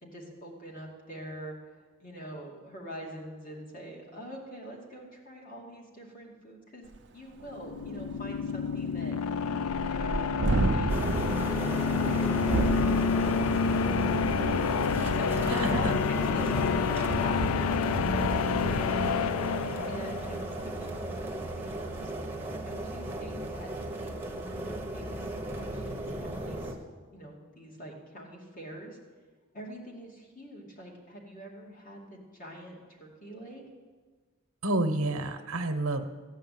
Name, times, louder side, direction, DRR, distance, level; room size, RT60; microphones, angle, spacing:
voice 1, 0.0-6.9 7.1-9.2 9.8-13.8 14.1-14.4 15.1-15.9 16.3-19.2 19.9-22.1 22.6-23.7 24.0-26.8 27.1-29.0 29.5-33.6, equal, 40° left, -2 dB, 2.5 m, -44 dB
Thunderstorm, 6.9-7.0 7.4-7.5 7.8-21.4, right 2 dB, 55° right, 0.6 m, -34 dB
sound 1, 7.5-20.5, left 6 dB, 90° left, 0.4 m, -29 dB
sound 2, 10.9-26.7, right 1 dB, 10° right, 1.1 m, -36 dB
voice 2, 15.5-15.9 34.6-36.1, right 2 dB, 80° right, 7 dB, 1.0 m, -29 dB
15.0 x 5.6 x 9.4 m, 1.4 s
head